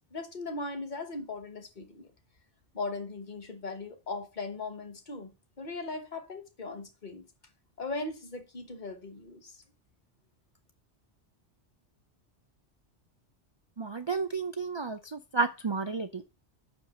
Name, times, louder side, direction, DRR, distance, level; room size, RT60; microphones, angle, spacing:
voice 1, 0.1-2.1 2.7-7.3 7.8-9.6, left 3 dB, 40° left, 1.2 m, -38 dB
voice 2, 13.8-16.2, right 4 dB, 40° right, 0.4 m, -32 dB
5.8 x 5.3 x 6.4 m
omnidirectional pair, 1.2 m